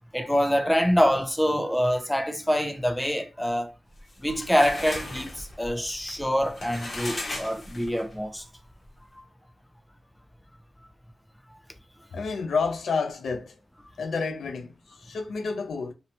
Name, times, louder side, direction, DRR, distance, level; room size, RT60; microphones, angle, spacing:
voice 1, 0.1-3.7 4.2-8.4, equal, 5° left, 0.3 m, -25 dB
sound 1, 4.0-8.2, left 2 dB, 40° left, 0.7 m, -37 dB
voice 2, 12.1-13.5 14.0-15.9, left 4 dB, 85° left, 0.4 m, -29 dB
2.6 x 2.1 x 2.8 m
wide cardioid pair, 150°, 0 cm